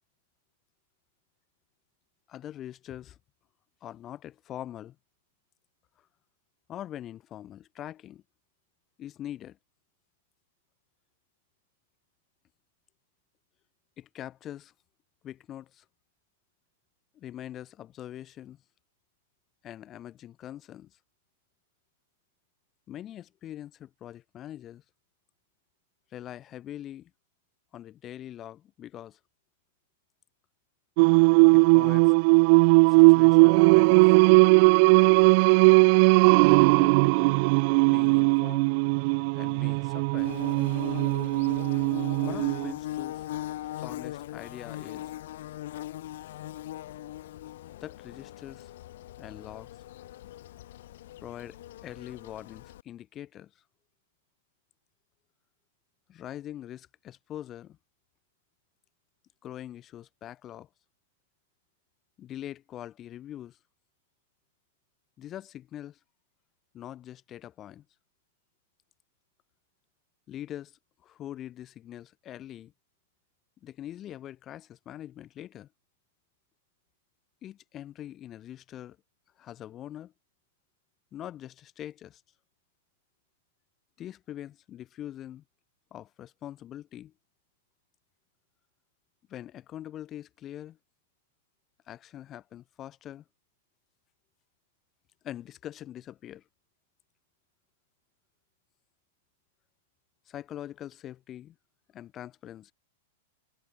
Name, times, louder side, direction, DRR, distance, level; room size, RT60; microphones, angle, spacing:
voice 1, 2.3-3.2 3.8-4.9 6.7-8.2 9.0-9.6 14.0-14.7 15.2-15.8 17.1-18.6 19.6-21.0 22.9-24.8 26.1-27.1 27.7-29.2 31.5-32.1 32.9-34.2 36.4-38.7 39.3-40.4 42.2-43.3 43.8-45.1 47.8-48.7 49.2-49.7 51.2-53.6 56.1-57.8 59.4-60.7 62.2-63.6 65.2-66.0 66.7-67.8 70.3-72.7 73.6-75.7 77.4-79.0 79.4-80.1 81.1-82.2 84.0-85.4 85.9-87.1 89.3-90.8 91.9-93.2 95.2-96.4 100.3-101.5 101.9-102.7, left 12 dB, 30° left, 3.2 m, -43 dB
Singing, 31.0-42.7, right 32 dB, 50° right, 0.3 m, -19 dB
Bird / Buzz, 40.2-52.8, left 14 dB, 65° left, 0.8 m, -40 dB
hypercardioid pair, 135°, 0 cm